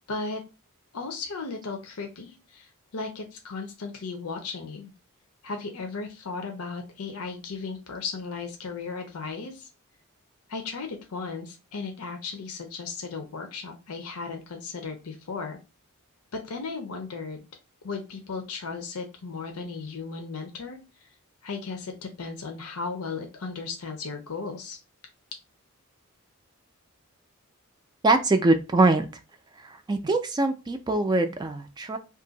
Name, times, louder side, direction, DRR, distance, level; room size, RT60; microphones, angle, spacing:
voice 1, 0.1-0.4 0.9-4.9 5.4-9.7 10.5-15.6 16.3-17.4 17.8-20.8 21.4-24.8, left 4 dB, 90° left, 3 dB, 0.7 m, -35 dB
voice 2, 28.0-29.1 29.6-32.0, right 2 dB, 20° right, 7 dB, 0.3 m, -23 dB
2.7 x 2.5 x 3.9 m, 0.29 s
head